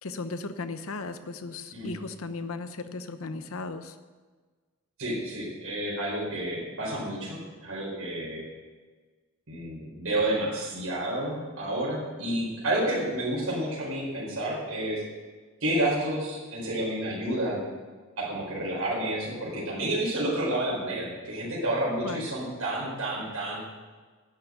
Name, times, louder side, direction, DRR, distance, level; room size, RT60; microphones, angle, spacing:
voice 1, 0.0-4.0 22.0-22.3, left 3 dB, 85° left, 10 dB, 0.9 m, -36 dB
voice 2, 5.0-8.4 9.5-15.0 15.6-17.7 18.2-23.6, right 1 dB, 80° right, -5 dB, 4.5 m, -30 dB
11.5 x 6.9 x 8.9 m, 1.4 s
head